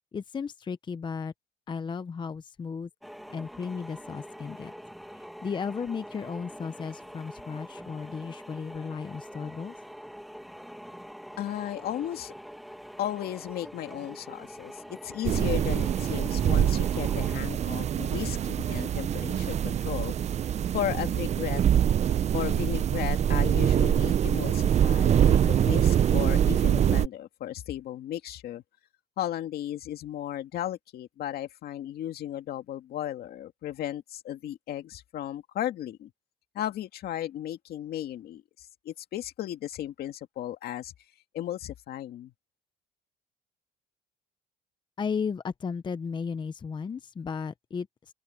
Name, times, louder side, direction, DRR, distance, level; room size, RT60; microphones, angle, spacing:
voice 1, 0.1-1.3 1.7-2.9 3.3-4.7 5.1-9.8 45.0-48.1, left 6 dB, 25° left, 0.7 m, -35 dB
sound 1, 3.0-17.4, equal, ahead, 1.7 m, -45 dB
voice 2, 11.4-12.3 13.0-20.1 20.7-21.6 22.3-28.6 29.2-36.1 36.5-40.9 41.3-42.3, left 12 dB, 65° left, 2.2 m, -35 dB
sound 2, 15.2-27.1, right 9 dB, 40° right, 0.6 m, -24 dB
open air
cardioid pair, 110°, 17 cm